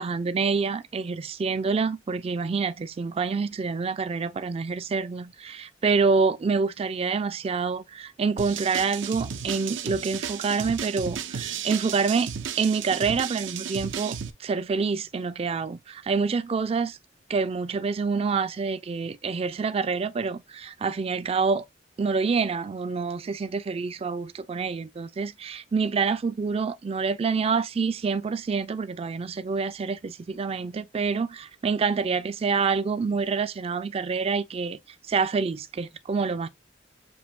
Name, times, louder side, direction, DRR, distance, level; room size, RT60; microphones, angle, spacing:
voice 1, 0.0-12.3 12.6-17.0 17.3-21.7 22.0-34.8 35.1-36.5, right 5 dB, 30° right, 0.3 m, -27 dB
sound 1, 8.4-14.3, right 7 dB, 85° right, 0.6 m, -34 dB
7.1 x 2.7 x 2.2 m
head